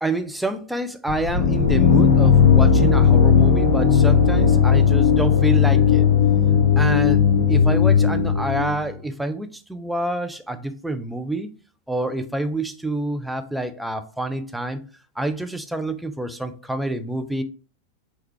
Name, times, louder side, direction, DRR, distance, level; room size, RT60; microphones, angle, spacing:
voice 1, 0.0-6.1 6.8-11.5 11.9-14.8 15.2-17.4, right 1 dB, 5° right, 0.4 m, -27 dB
sound 1, 1.1-8.9, left 6 dB, 65° left, 0.8 m, -16 dB
4.6 x 2.3 x 3.2 m
figure-of-eight pair, 90°, 0 cm